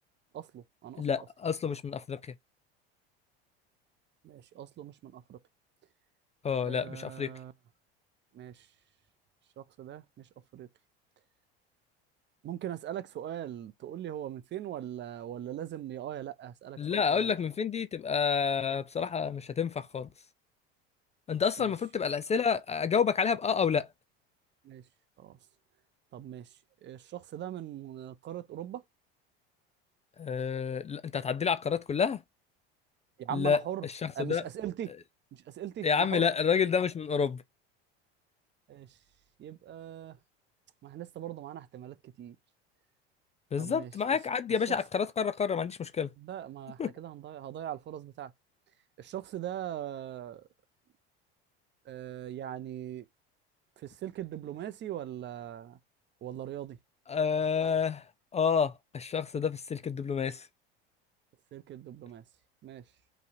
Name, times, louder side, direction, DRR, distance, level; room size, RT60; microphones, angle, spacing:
voice 1, 0.3-1.2 4.2-5.4 6.6-7.5 8.3-8.7 9.6-10.3 10.5-10.7 12.4-17.3 21.6-21.7 24.6-24.8 25.2-25.4 26.1-26.5 26.8-28.8 33.2-33.9 34.1-34.9 35.3-36.3 38.7-38.9 39.4-40.2 40.8-42.4 43.6-44.2 44.7-44.8 46.2-48.3 49.0-50.4 51.9-53.0 53.8-55.8 56.2-56.8 61.5-62.2 62.6-62.8, right 11 dB, 35° right, 0.6 m, -40 dB
voice 2, 1.0-2.2 6.4-7.3 16.8-20.1 21.3-23.9 30.2-32.2 33.3-34.4 35.8-37.4 43.5-46.1 46.8-46.9 57.1-58.0 58.3-60.5, left 6 dB, 20° left, 0.4 m, -29 dB
5.4 x 3.2 x 2.6 m
hypercardioid pair, 90°, 31 cm